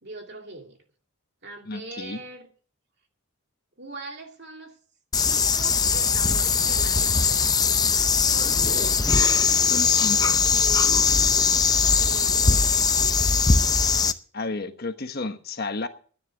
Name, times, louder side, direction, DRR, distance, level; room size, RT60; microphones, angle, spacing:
voice 1, 0.0-0.8 1.4-2.5 3.8-4.8 5.2-7.6 8.2-11.1 12.0-13.7, right 2 dB, 50° right, 2.4 m, -42 dB
voice 2, 1.7-2.2 9.6-10.5 14.3-15.9, left 3 dB, 45° left, 1.2 m, -31 dB
sound 1, 5.1-14.1, left 5 dB, 20° left, 0.6 m, -20 dB
13.5 x 10.0 x 6.2 m
head